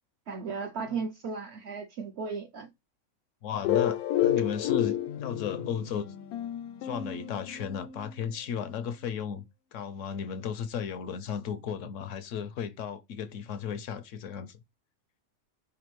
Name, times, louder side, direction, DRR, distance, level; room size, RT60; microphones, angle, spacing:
voice 1, 0.3-2.7, right 5 dB, 65° right, 0.7 m, -35 dB
voice 2, 3.4-6.1 6.8-9.5 9.7-14.6, left 7 dB, 65° left, 0.8 m, -35 dB
sound 1, 3.6-8.2, left 11 dB, 85° left, 1.2 m, -30 dB
5.0 x 2.6 x 3.0 m
omnidirectional pair, 1.5 m